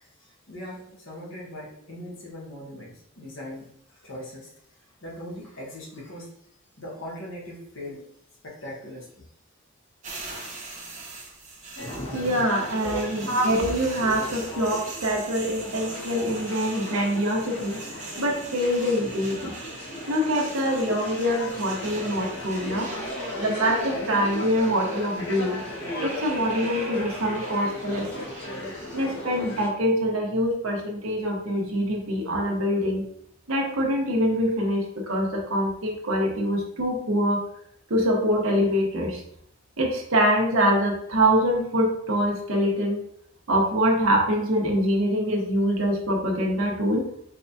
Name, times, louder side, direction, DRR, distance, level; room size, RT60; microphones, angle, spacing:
voice 1, 0.0-4.5 5.0-6.3 6.8-8.1 8.4-9.3 12.8-13.1, equal, 60° left, -4 dB, 1.3 m, -39 dB
sound 1, 10.0-29.0, right 3 dB, 35° right, 0.8 m, -41 dB
sound 2, 11.8-29.7, left 1 dB, 80° left, 1.4 m, -36 dB
voice 2, 12.1-17.8 18.2-19.5 20.1-22.9 23.4-25.6 26.0-28.2 28.9-33.0 33.5-37.4 37.9-39.2 39.8-43.0 43.5-47.1, equal, 75° right, 0 dB, 1.0 m, -24 dB
4.6 x 3.4 x 2.7 m, 0.70 s
head